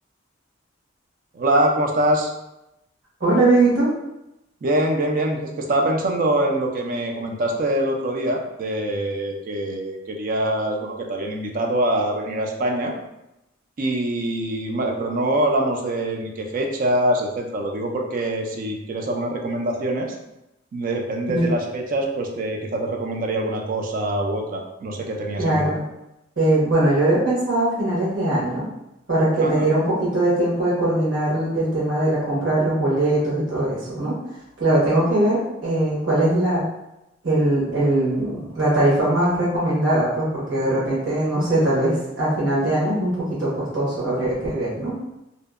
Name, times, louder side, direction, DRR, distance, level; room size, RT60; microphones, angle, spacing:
voice 1, 1.3-2.3 4.6-12.9 13.8-20.2 20.7-25.7 29.3-29.7, right 1 dB, 45° right, 2 dB, 0.3 m, -24 dB
voice 2, 3.2-3.9 21.3-21.5 25.4-25.8 26.4-28.6 29.1-34.2 34.6-36.6 37.2-44.9, right 1 dB, 65° right, -9 dB, 1.1 m, -21 dB
2.6 x 2.1 x 2.3 m, 0.90 s
head